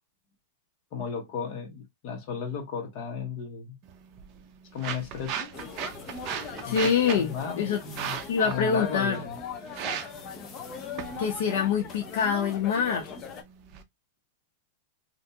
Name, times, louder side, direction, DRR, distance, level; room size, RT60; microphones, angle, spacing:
voice 1, 0.9-3.8 4.7-5.5 6.6-6.8 7.2-8.2 8.4-9.4, left 6 dB, 40° left, 1.2 m, -34 dB
sound 1, 3.8-13.8, right 8 dB, 35° right, 0.6 m, -39 dB
sound 2, 5.5-13.4, left 6 dB, 25° left, 0.6 m, -40 dB
voice 2, 6.6-7.8 8.3-9.2 11.2-13.1, left 6 dB, 65° left, 0.7 m, -25 dB
3.3 x 2.5 x 2.8 m
supercardioid pair, 160°, 0 cm